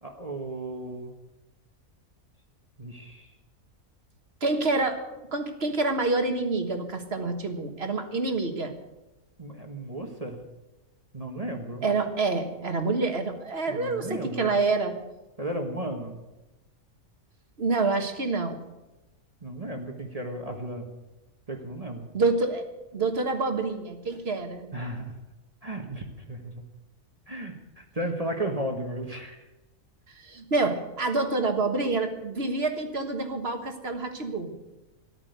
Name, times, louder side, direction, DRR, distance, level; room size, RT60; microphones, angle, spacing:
voice 1, 0.0-1.1 2.8-3.3 9.4-10.4 11.1-11.8 13.7-14.5 15.4-16.2 19.4-20.8 21.5-22.1 24.7-25.2 25.6-26.5 27.3-29.5, right 1 dB, 25° right, 3 dB, 1.5 m, -34 dB
voice 2, 4.4-5.0 5.3-8.7 11.8-15.0 17.6-18.6 22.1-22.6 22.9-24.7 30.2-34.6, right 3 dB, 45° right, 6 dB, 1.7 m, -27 dB
14.0 x 11.5 x 8.1 m, 1.0 s
omnidirectional pair, 1.5 m